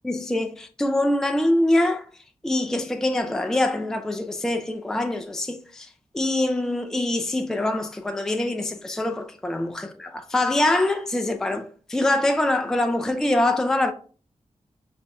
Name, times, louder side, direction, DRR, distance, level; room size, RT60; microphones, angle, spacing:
voice 1, 0.0-2.0 2.4-13.9, left 1 dB, 5° left, 0.3 m, -24 dB
5.0 x 2.7 x 2.3 m
wide cardioid pair, 95°, 12 cm